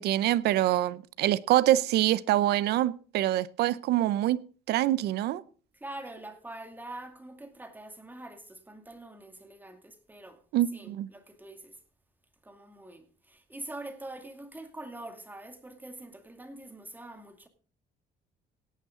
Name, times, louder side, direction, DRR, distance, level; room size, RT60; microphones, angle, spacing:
voice 1, 0.0-4.4 4.7-5.4 10.5-11.1, right 14 dB, 75° right, 0.6 m, -25 dB
voice 2, 5.7-10.4 10.7-11.8 12.4-17.5, right 2 dB, 10° right, 2.4 m, -44 dB
17.5 x 9.3 x 3.7 m
cardioid pair, 110°, 17 cm